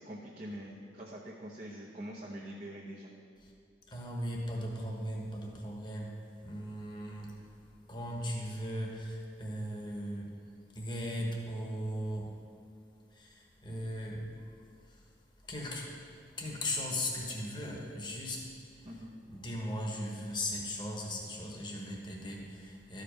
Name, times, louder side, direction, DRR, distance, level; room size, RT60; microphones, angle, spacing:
voice 1, 0.0-3.1 18.9-19.2, right 1 dB, 40° right, -4 dB, 0.8 m, -44 dB
voice 2, 3.9-6.1 6.4-7.3 7.9-10.3 10.7-12.3 13.1-14.3 14.9-15.0 15.5-15.9 16.4-18.5 19.3-23.0, equal, 25° left, -1 dB, 1.2 m, -38 dB
12.5 x 5.2 x 5.2 m, 2.3 s
head